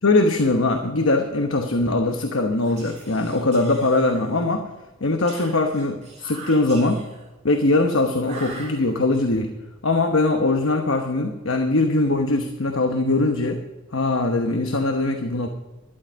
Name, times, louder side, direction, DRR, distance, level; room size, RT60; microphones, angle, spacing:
voice 1, 0.0-4.7 5.0-7.1 7.4-9.6 9.8-13.6 13.9-15.5, left 2 dB, 70° left, 5 dB, 1.1 m, -21 dB
Whispering, 2.6-4.5 5.3-7.3 8.2-9.2, right 3 dB, 35° right, 5.3 m, -42 dB
12.5 x 11.0 x 5.2 m, 1.1 s
head